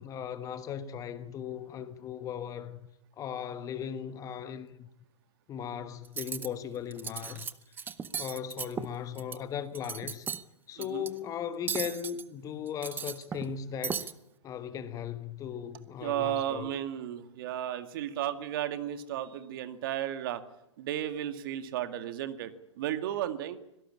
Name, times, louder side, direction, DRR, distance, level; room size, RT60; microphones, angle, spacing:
voice 1, 0.0-2.8 3.2-4.9 5.5-7.5 8.2-10.3 10.7-14.1 14.4-16.7, left 8 dB, 20° left, 1.3 m, -37 dB
Cutlery silverware, 6.0-6.5 6.9-7.5 7.8-9.4 9.7-10.4 10.8-11.1 11.7-12.2 12.7-13.5 13.8-14.1, right 7 dB, 15° right, 0.8 m, -36 dB
voice 2, 16.0-20.4 20.8-23.6, right 11 dB, 45° right, 2.1 m, -34 dB
25.5 x 17.5 x 8.6 m
figure-of-eight pair, 115°, 16 cm